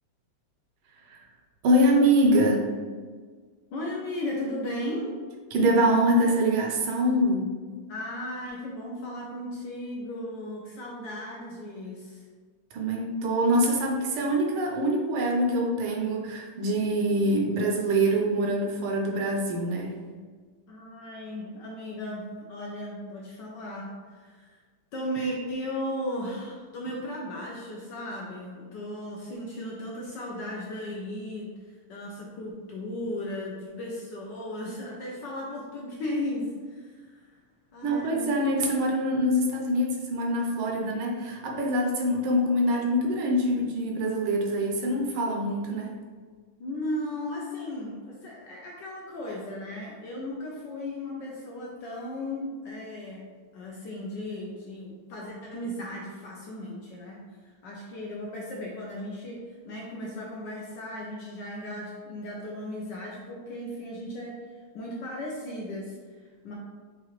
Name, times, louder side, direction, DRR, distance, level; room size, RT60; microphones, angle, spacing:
voice 1, 1.6-2.7 5.5-7.5 12.7-20.0 37.8-45.9, equal, 75° right, 0 dB, 1.5 m, -24 dB
voice 2, 3.7-5.1 7.9-12.2 20.7-24.6 24.9-37.4 37.7-38.3 46.6-66.5, left 1 dB, 70° left, -3 dB, 1.1 m, -36 dB
5.7 x 2.4 x 3.1 m, 1.5 s
omnidirectional pair, 2.4 m